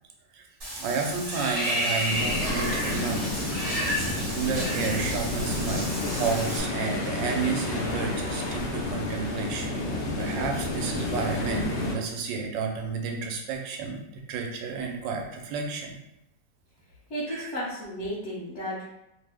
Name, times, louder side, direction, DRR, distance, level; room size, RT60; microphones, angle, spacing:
Water / Bathtub (filling or washing), 0.6-6.6, equal, 35° right, 0.5 m, -31 dB
voice 1, 0.8-3.8 4.1-9.9 10.2-14.0 14.3-16.0 17.3-17.5, right 5 dB, 85° right, 2 dB, 1.3 m, -31 dB
sound 1, 2.1-11.9, left 2 dB, 85° left, 0.6 m, -31 dB
voice 2, 17.1-18.9, equal, 50° left, -9 dB, 0.9 m, -33 dB
3.0 x 2.0 x 3.4 m, 0.84 s
omnidirectional pair, 1.9 m